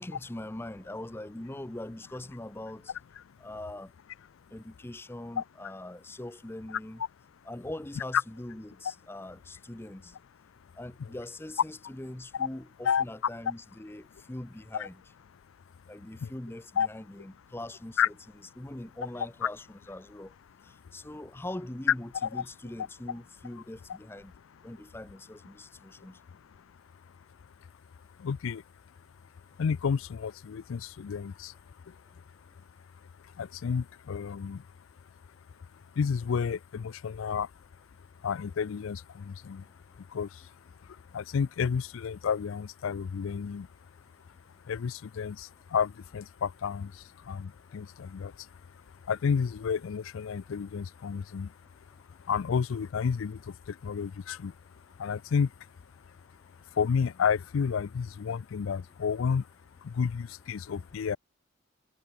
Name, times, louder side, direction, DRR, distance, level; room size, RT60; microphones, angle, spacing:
voice 1, 0.0-2.9 3.4-3.9 4.5-7.0 7.4-10.1 10.8-15.0 15.9-18.1 18.6-20.3 20.9-24.3 24.6-26.2, left 1 dB, 10° left, 0.6 m, -42 dB
voice 2, 28.2-28.6 29.6-31.6 31.9-32.0 33.2-34.6 35.9-37.5 38.2-39.7 40.0-40.5 40.8-43.7 44.6-48.6 49.0-51.5 52.1-54.6 55.0-55.5 56.7-59.5 59.8-61.2, left 6 dB, 75° left, 0.4 m, -31 dB
head